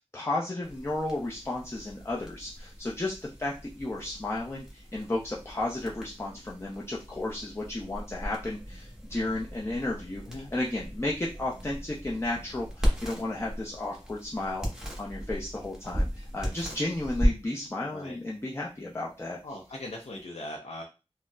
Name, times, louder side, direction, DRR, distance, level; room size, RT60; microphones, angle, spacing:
voice 1, 0.1-19.4, left 2 dB, 25° left, -3 dB, 0.6 m, -33 dB
sound 1, 0.6-20.2, equal, 5° right, 1.1 m, -36 dB
voice 2, 19.4-20.8, left 1 dB, 80° left, 0 dB, 0.5 m, -40 dB
4.0 x 2.0 x 2.3 m, 0.30 s
wide cardioid pair, 45°, 11 cm